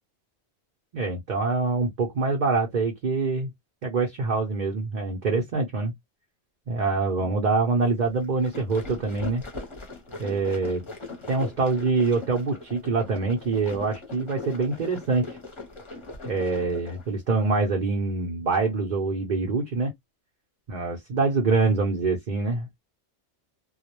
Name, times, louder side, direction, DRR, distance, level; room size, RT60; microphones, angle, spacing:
voice 1, 0.9-3.5 3.8-5.9 6.7-9.4 10.2-10.8 11.3-15.4 16.2-19.9 20.7-22.7, right 3 dB, 50° right, 0.7 m, -25 dB
sound 1, 8.2-17.1, left 2 dB, 30° left, 0.7 m, -40 dB
2.3 x 2.0 x 2.9 m
omnidirectional pair, 1.2 m